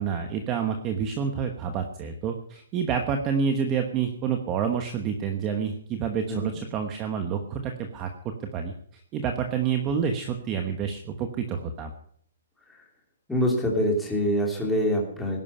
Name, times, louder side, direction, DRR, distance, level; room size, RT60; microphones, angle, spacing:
voice 1, 0.0-8.1 8.5-8.7 9.1-11.9, right 7 dB, 15° right, 5 dB, 1.1 m, -28 dB
voice 2, 13.3-15.4, equal, 5° left, -1 dB, 3.0 m, -25 dB
18.5 x 11.0 x 5.6 m, 0.63 s
hypercardioid pair, 175°, 0 cm